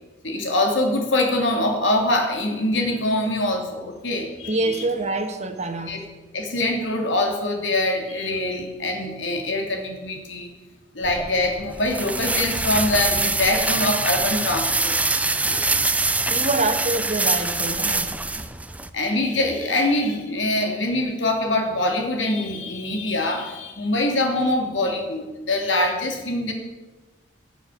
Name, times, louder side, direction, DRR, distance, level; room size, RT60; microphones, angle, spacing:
voice 1, 0.2-4.8 5.9-6.0 6.3-10.5 10.9-14.9 15.4-15.7 18.9-26.5, left 1 dB, 70° left, 3 dB, 2.9 m, -24 dB
voice 2, 4.5-5.9 16.3-18.1, right 2 dB, 35° right, 6 dB, 1.5 m, -25 dB
sound 1, 11.0-18.9, right 3 dB, 10° right, 0.5 m, -24 dB
18.0 x 7.2 x 7.1 m, 1.2 s
head